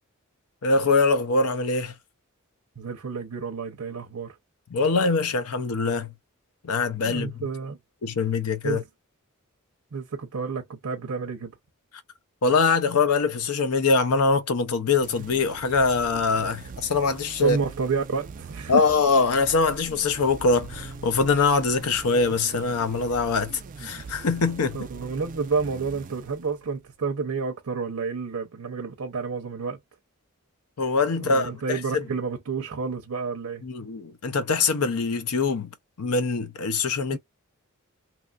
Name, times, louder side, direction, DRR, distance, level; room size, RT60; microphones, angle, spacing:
voice 1, 0.6-1.9 4.7-6.1 6.6-7.4 8.0-8.8 12.4-17.6 18.7-24.8 30.8-32.0 33.6-35.7 36.0-37.2, left 4 dB, 85° left, 0.6 m, -23 dB
voice 2, 2.8-4.3 7.0-7.8 8.6-8.8 9.9-11.5 17.4-18.8 24.7-29.8 31.1-33.6 37.1-37.2, right 5 dB, 75° right, 0.7 m, -30 dB
sound 1, 15.0-26.9, right 4 dB, 35° right, 0.3 m, -42 dB
2.9 x 2.4 x 2.4 m
head